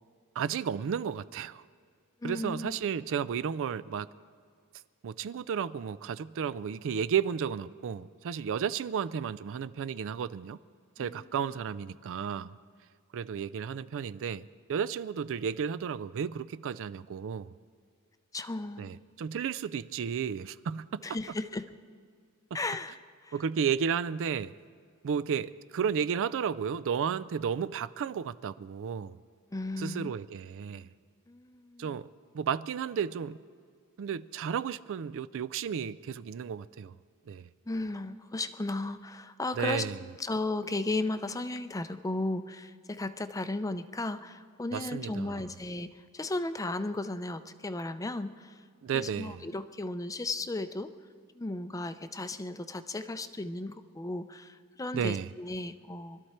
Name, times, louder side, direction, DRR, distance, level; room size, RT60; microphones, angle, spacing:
voice 1, 0.4-1.6 2.2-4.1 5.0-10.6 11.0-12.6 13.1-17.5 18.8-21.0 23.3-24.6 25.0-29.2 29.8-30.9 31.8-32.1 32.3-33.4 34.0-36.9 37.3-37.5 39.6-40.0 44.7-45.4 48.8-49.5 54.9-55.3, right 7 dB, 60° right, 0.4 m, -33 dB
voice 2, 2.2-2.8 11.0-11.3 18.3-19.0 21.0-21.7 22.5-23.3 29.5-30.1 31.3-31.9 37.7-39.8 40.2-48.6 48.9-50.9 51.3-56.2, left 2 dB, 15° left, 0.5 m, -35 dB
24.5 x 13.0 x 4.3 m
head